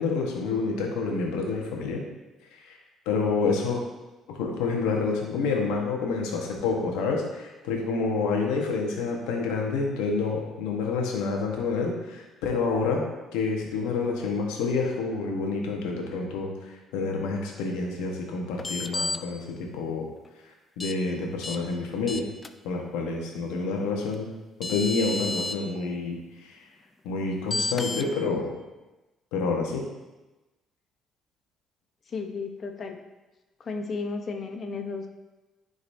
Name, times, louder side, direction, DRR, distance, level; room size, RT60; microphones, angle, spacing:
voice 1, 0.0-2.0 2.7-2.8 3.1-3.8 4.4-13.0 13.3-16.5 16.9-20.1 20.8-22.2 22.6-24.3 24.7-26.2 27.0-28.5 29.3-29.8, left 4 dB, 85° left, 0 dB, 1.1 m, -28 dB
sound 1, 18.6-19.2 20.8-20.9 21.4-21.6 22.1-22.5 24.1-24.2 24.6-25.5 27.5-28.0, left 3 dB, 25° left, 0.5 m, -31 dB
voice 2, 32.1-32.9 33.7-35.0, left 4 dB, 50° left, 4 dB, 0.9 m, -33 dB
10.0 x 4.0 x 2.7 m, 1.1 s
supercardioid pair, 70°, 0 cm